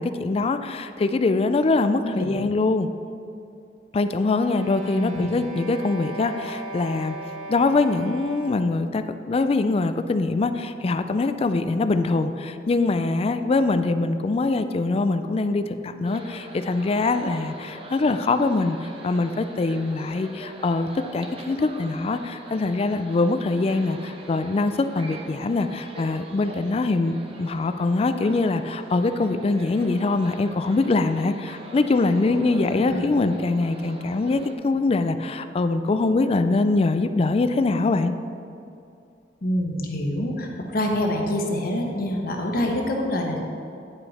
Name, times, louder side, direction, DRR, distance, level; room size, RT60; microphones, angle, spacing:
voice 1, 0.0-2.9 3.9-7.2 7.5-38.1, left 3 dB, 35° left, 10 dB, 0.3 m, -23 dB
voice 2, 2.0-2.4 4.9-5.3 32.6-33.2 39.4-43.4, left 1 dB, 55° left, 1 dB, 1.1 m, -26 dB
sound 1, 4.1-8.8, right 1 dB, 85° right, 1.2 m, -38 dB
sound 2, 16.0-34.5, right 1 dB, 35° right, 0.8 m, -43 dB
9.7 x 5.6 x 4.2 m, 2.5 s
head